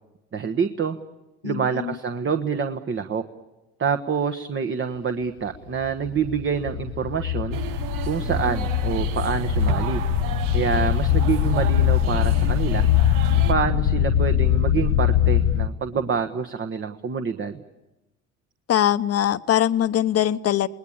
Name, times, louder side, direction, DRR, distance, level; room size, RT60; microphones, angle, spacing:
voice 1, 0.3-1.0 1.4-3.2 3.8-10.0 10.5-12.9 13.4-17.6, right 6 dB, 35° right, 7 dB, 1.3 m, -27 dB
voice 2, 1.4-2.0 18.7-20.7, left 11 dB, 45° left, 13 dB, 1.0 m, -22 dB
sound 1, 5.8-15.7, left 10 dB, 80° left, 1.3 m, -22 dB
sound 2, 7.5-13.5, right 5 dB, 70° right, 1.1 m, -31 dB
29.0 x 19.5 x 8.6 m, 1.0 s
hypercardioid pair, 70°, 34 cm